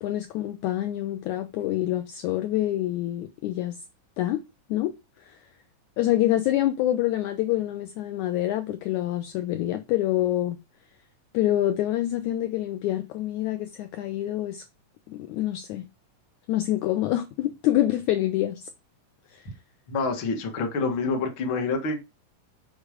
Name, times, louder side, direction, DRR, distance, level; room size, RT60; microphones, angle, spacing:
voice 1, 0.0-3.7 4.2-4.4 4.7-4.9 5.2-5.4 6.0-10.6 11.3-14.6 15.1-15.9 16.5-18.7 19.3-19.4, left 14 dB, 80° left, 1.7 m, -26 dB
voice 2, 19.9-22.0, left 4 dB, 50° left, 1.5 m, -27 dB
6.7 x 4.9 x 4.9 m
omnidirectional pair, 4.1 m